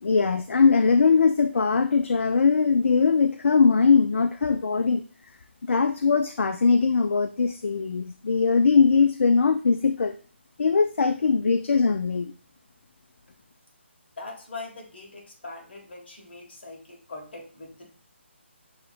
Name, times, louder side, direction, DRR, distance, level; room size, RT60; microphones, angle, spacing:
voice 1, 0.0-5.0 5.6-10.2 10.6-12.3, left 5 dB, 80° left, 9 dB, 0.3 m, -21 dB
voice 2, 14.2-17.9, left 3 dB, 55° left, 0 dB, 1.6 m, -41 dB
6.3 x 2.9 x 2.4 m, 0.40 s
hypercardioid pair, 160°, 7 cm